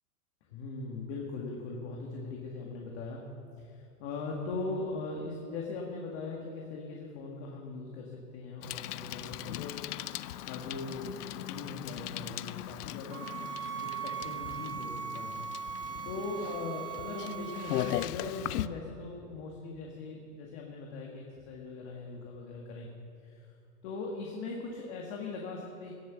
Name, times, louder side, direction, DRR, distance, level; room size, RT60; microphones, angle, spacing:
voice 1, 0.5-3.2 3.6-9.8 10.4-13.4 13.8-15.7 16.0-22.9 23.2-23.4 23.8-25.9, left 3 dB, 45° left, -1 dB, 1.9 m, -40 dB
Bicycle, 8.6-18.7, left 13 dB, 85° left, 0.6 m, -39 dB
sound 1, 13.1-18.1, right 8 dB, 85° right, 2.2 m, -39 dB
16.5 x 7.8 x 7.1 m, 2.5 s
supercardioid pair, 155°, 45 cm